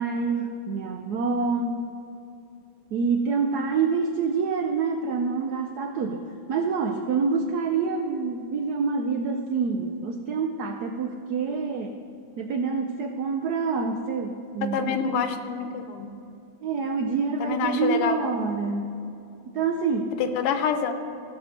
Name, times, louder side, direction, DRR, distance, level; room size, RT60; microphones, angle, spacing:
voice 1, 0.0-1.9 2.9-12.0 12.4-15.2 16.6-19.0 19.5-20.2, right 4 dB, 80° right, 5 dB, 0.8 m, -27 dB
voice 2, 14.7-16.1 17.4-18.3 20.2-20.9, left 6 dB, 90° left, 8 dB, 1.8 m, -27 dB
15.5 x 6.0 x 6.4 m, 2.7 s
omnidirectional pair, 2.4 m